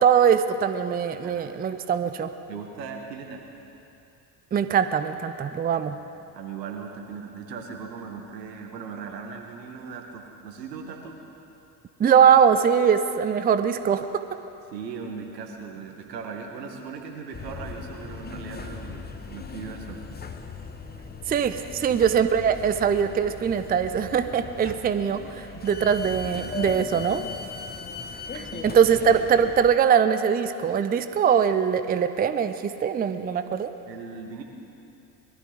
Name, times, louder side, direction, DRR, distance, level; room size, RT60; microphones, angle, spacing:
voice 1, 0.0-2.3 4.5-6.0 12.0-14.2 21.3-27.2 28.3-33.7, right 7 dB, 20° right, 11 dB, 0.5 m, -22 dB
voice 2, 2.5-3.4 5.9-6.1 6.3-11.2 14.7-20.0 21.9-22.0 25.5-25.7 28.5-29.0 33.9-34.4, right 5 dB, 80° right, 3 dB, 1.7 m, -38 dB
sound 1, 17.3-29.8, left 4 dB, 20° left, 1.0 m, -38 dB
21.0 x 13.0 x 4.0 m, 2.8 s
hypercardioid pair, 65°, 49 cm